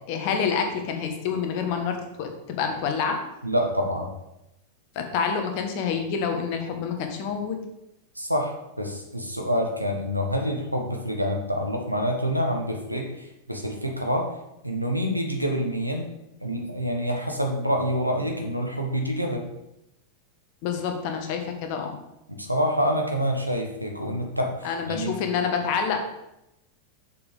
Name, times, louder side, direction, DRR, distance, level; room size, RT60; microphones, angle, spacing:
voice 1, 0.1-3.2 4.9-7.6 20.6-22.0 24.6-26.0, left 6 dB, 45° left, 5 dB, 1.3 m, -27 dB
voice 2, 3.4-4.1 8.1-14.3 14.6-16.1 16.4-19.5 22.4-25.2, equal, 90° right, 2 dB, 1.2 m, -27 dB
6.7 x 5.3 x 5.0 m, 0.87 s
figure-of-eight pair, 90°, 0 cm